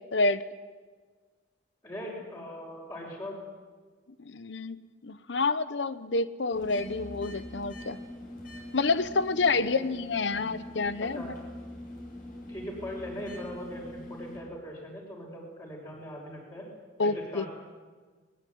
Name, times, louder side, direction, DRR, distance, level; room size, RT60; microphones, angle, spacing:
voice 1, 0.1-0.4 4.2-4.8 5.0-8.0 8.7-11.2 17.0-17.5, left 3 dB, 75° left, 14 dB, 0.9 m, -28 dB
voice 2, 1.8-3.3 9.5-9.9 10.4-10.5 11.0-11.3 12.5-16.7 17.0-17.5, equal, 25° left, -5 dB, 6.1 m, -40 dB
sound 1, 6.5-14.4, left 1 dB, 50° left, 6.9 m, -43 dB
21.0 x 20.0 x 9.5 m, 1.4 s
head